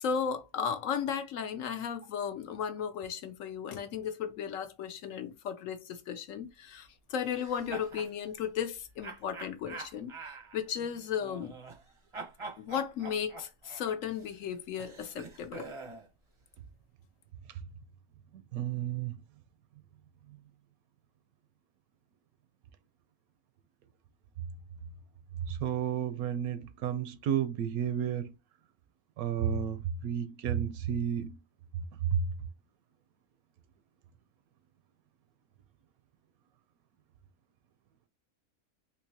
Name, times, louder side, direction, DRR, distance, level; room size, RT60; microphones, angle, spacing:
voice 1, 0.0-10.1 10.5-11.5 12.6-15.7, left 7 dB, 70° left, 0.9 m, -35 dB
sound 1, 7.2-8.1 9.0-11.9 12.1-16.1, right 4 dB, 30° right, 0.6 m, -45 dB
voice 2, 18.5-19.1 25.5-28.3 29.2-31.4 32.0-32.3, right 8 dB, 80° right, 1.0 m, -31 dB
3.7 x 2.8 x 2.8 m
omnidirectional pair, 1.5 m